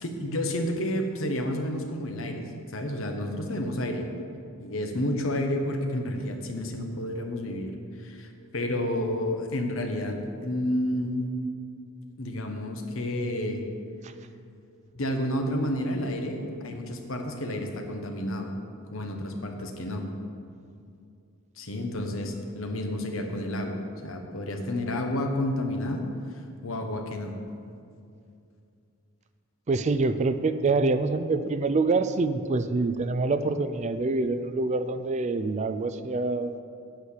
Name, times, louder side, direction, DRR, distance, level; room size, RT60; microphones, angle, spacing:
voice 1, 0.0-4.1 4.6-11.3 12.2-13.6 14.9-18.5 18.9-20.1 21.6-26.0 26.6-27.3, left 1 dB, 65° left, 3 dB, 1.2 m, -30 dB
voice 2, 29.7-36.6, right 3 dB, 35° right, 11 dB, 0.4 m, -26 dB
8.1 x 6.5 x 8.3 m, 2.4 s
head